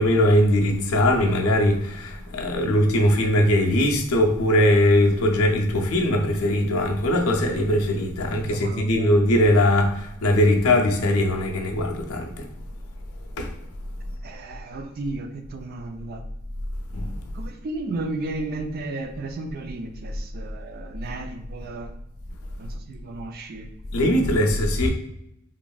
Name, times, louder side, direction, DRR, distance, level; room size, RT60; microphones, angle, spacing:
voice 1, 0.0-12.5 13.4-13.6 16.9-17.3 23.9-24.9, left 1 dB, 75° left, 2 dB, 0.5 m, -20 dB
voice 2, 8.4-9.1 14.2-16.2 17.3-21.9 22.6-23.7, right 2 dB, 45° right, 6 dB, 0.3 m, -34 dB
2.9 x 2.5 x 2.2 m, 0.81 s
head